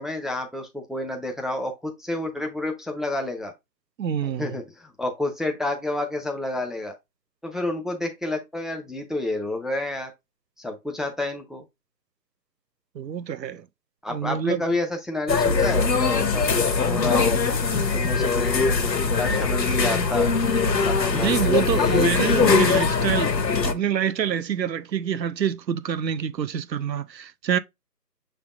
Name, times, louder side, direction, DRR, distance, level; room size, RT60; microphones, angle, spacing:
voice 1, 0.0-3.5 4.2-7.0 7.4-10.1 10.6-11.6 14.0-17.4 17.9-20.3 20.8-22.8, left 2 dB, ahead, 0.5 m, -30 dB
voice 2, 4.0-4.5 13.0-13.6 14.1-14.6 21.1-23.3 23.6-27.6, right 8 dB, 85° right, 0.6 m, -26 dB
sound 1, 15.3-23.7, left 4 dB, 80° left, 0.8 m, -21 dB
6.2 x 3.4 x 2.3 m
figure-of-eight pair, 175°, 50 cm